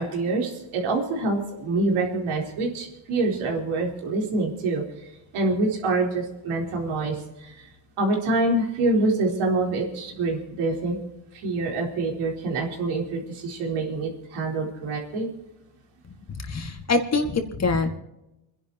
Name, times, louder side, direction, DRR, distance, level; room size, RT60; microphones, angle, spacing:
voice 1, 0.0-5.1 5.3-7.7 8.0-11.0 11.3-15.3, right 2 dB, 80° right, -1 dB, 4.2 m, -26 dB
voice 2, 16.5-17.9, left 3 dB, 30° left, 5 dB, 2.1 m, -24 dB
29.0 x 11.0 x 3.0 m, 0.92 s
cardioid pair, 125°, 49 cm